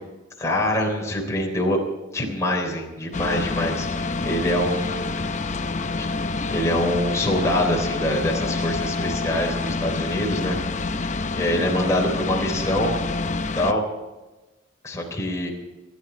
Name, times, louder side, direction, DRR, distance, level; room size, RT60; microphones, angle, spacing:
voice 1, 0.4-1.8 2.1-5.2 6.0-6.1 6.5-10.6 11.3-12.9 13.6-13.8 14.8-15.5, left 1 dB, 15° left, -1 dB, 3.5 m, -24 dB
sound 1, 3.1-13.7, left 3 dB, 40° left, 0.7 m, -27 dB
27.5 x 10.5 x 4.4 m, 1.1 s
head